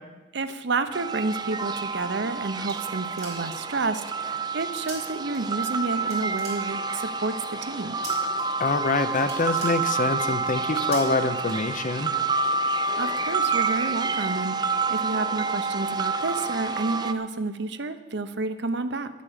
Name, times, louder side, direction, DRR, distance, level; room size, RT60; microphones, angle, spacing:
voice 1, 0.3-8.0 13.0-19.1, right 3 dB, 65° right, 11 dB, 0.8 m, -30 dB
sound 1, 0.9-17.1, right 4 dB, 25° right, 0.5 m, -28 dB
sound 2, 2.7-3.7 4.9-5.0 5.3-5.8 6.1-7.1 8.0-8.4 8.8-8.9 9.2-10.3 10.9-11.0 11.4-12.1, right 3 dB, 40° right, 4.3 m, -42 dB
voice 2, 8.6-12.1, left 3 dB, 45° left, 11 dB, 0.7 m, -25 dB
11.0 x 8.4 x 7.5 m, 1.2 s
head